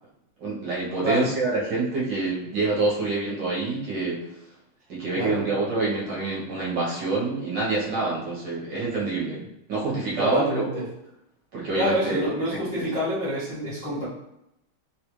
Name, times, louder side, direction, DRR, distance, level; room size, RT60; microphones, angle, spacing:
voice 1, 0.4-4.2 4.9-10.8 11.5-12.9, right 3 dB, 60° right, -6 dB, 1.5 m, -27 dB
voice 2, 10.2-10.8 11.7-14.1, equal, 85° left, -10 dB, 0.3 m, -27 dB
3.7 x 2.4 x 3.0 m, 0.85 s
omnidirectional pair, 2.4 m